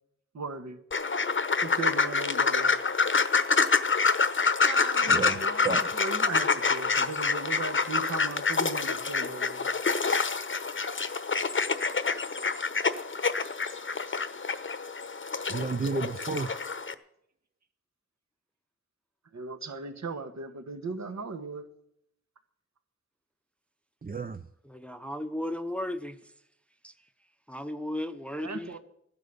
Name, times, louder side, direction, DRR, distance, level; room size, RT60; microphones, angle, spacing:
voice 1, 0.3-0.8 1.6-2.8 4.6-9.7 16.4-16.6 19.3-21.7 28.4-28.8, right 3 dB, 65° right, 1.5 m, -37 dB
sound 1, 0.9-16.9, left 4 dB, 40° left, 0.9 m, -27 dB
voice 2, 5.1-6.1 15.5-16.5 24.0-24.4, right 4 dB, 30° right, 0.6 m, -32 dB
voice 3, 24.6-26.2 26.8-26.9 27.5-28.8, left 1 dB, 5° left, 0.8 m, -35 dB
15.5 x 10.5 x 6.8 m
wide cardioid pair, 65°, 30 cm